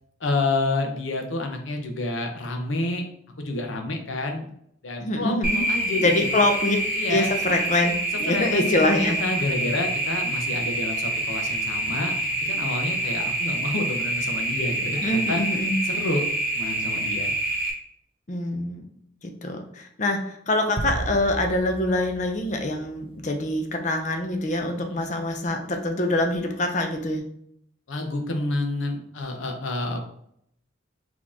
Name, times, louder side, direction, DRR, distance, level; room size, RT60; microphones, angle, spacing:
voice 1, 0.2-3.0 3.4-4.5 4.8-5.3 5.7-6.3 6.9-7.3 8.3-12.1 12.4-15.4 15.8-16.2 16.5-17.3 24.8-25.0 27.9-30.0, left 2 dB, 85° left, 4 dB, 0.8 m, -29 dB
voice 2, 5.0-5.6 6.0-6.8 7.1-7.9 8.2-9.2 15.0-15.8 18.3-18.9 19.2-27.3, left 1 dB, 40° left, 4 dB, 0.6 m, -25 dB
sound 1, 5.4-17.7, right 1 dB, 5° right, 1.3 m, -27 dB
sound 2, 20.8-23.3, right 2 dB, 30° right, 0.3 m, -34 dB
4.2 x 3.0 x 3.6 m, 0.70 s
head